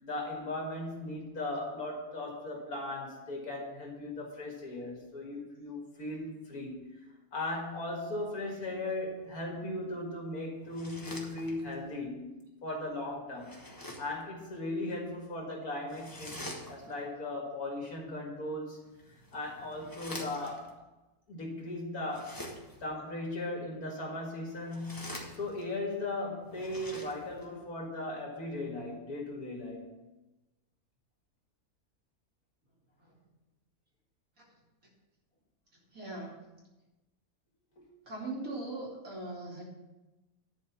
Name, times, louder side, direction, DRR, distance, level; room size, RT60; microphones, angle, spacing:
voice 1, 0.0-7.0 7.3-13.6 14.0-18.8 19.3-20.7 21.3-22.4 22.8-30.0 37.8-37.9, left 2 dB, 80° left, -1 dB, 2.4 m, -38 dB
sound 1, 10.6-11.9 13.4-14.2 15.9-17.1 18.9-20.7 22.0-22.9 24.5-25.8 26.4-27.5, left 1 dB, 15° left, 1.2 m, -46 dB
voice 2, 35.7-36.5 38.0-39.6, right 2 dB, 65° right, -4 dB, 3.2 m, -41 dB
10.5 x 4.7 x 7.0 m, 1.1 s
omnidirectional pair, 1.5 m